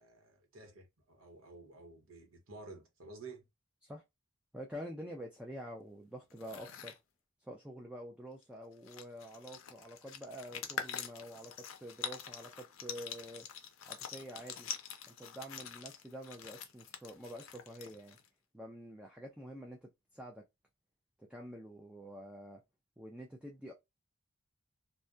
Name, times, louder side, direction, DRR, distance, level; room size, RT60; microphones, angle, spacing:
voice 1, 0.0-3.5, right 3 dB, 85° right, 0.9 m, -52 dB
voice 2, 4.5-7.0 7.4-13.5 13.9-14.7 15.1-18.2 18.5-20.4 21.2-22.6 23.0-23.7, equal, 5° right, 0.4 m, -47 dB
sound 1, 6.3-7.0 8.4-8.5 8.7-18.3, left 8 dB, 80° left, 0.5 m, -45 dB
2.7 x 2.1 x 2.3 m
head